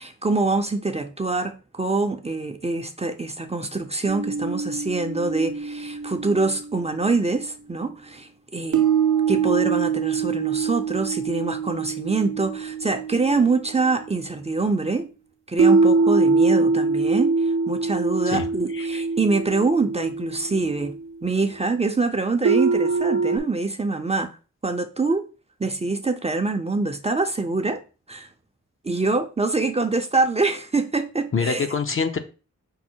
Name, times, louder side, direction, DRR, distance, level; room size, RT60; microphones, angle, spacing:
voice 1, 0.0-8.9 9.3-15.1 15.5-21.0 21.2-24.3 24.6-25.3 25.6-27.8 28.1-28.3 28.8-31.7, right 3 dB, 20° right, 0.5 m, -25 dB
sound 1, 4.1-7.3 8.7-14.2 15.6-21.0 22.5-23.4, right 4 dB, 80° right, 0.7 m, -24 dB
voice 2, 18.3-19.0 31.3-32.2, left 5 dB, 45° left, 0.6 m, -26 dB
5.4 x 2.1 x 4.4 m
wide cardioid pair, 75°, 29 cm